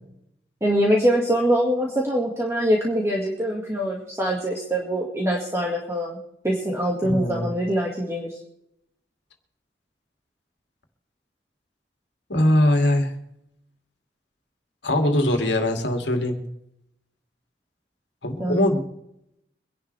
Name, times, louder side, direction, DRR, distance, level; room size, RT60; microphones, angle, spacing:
voice 1, 0.6-6.2 6.4-8.3 18.4-18.8, equal, 15° right, -2 dB, 2.0 m, -23 dB
voice 2, 7.0-7.5 12.3-13.1 14.8-16.4 18.2-18.8, left 1 dB, 65° left, 4 dB, 2.5 m, -21 dB
24.5 x 11.0 x 3.4 m, 0.78 s
head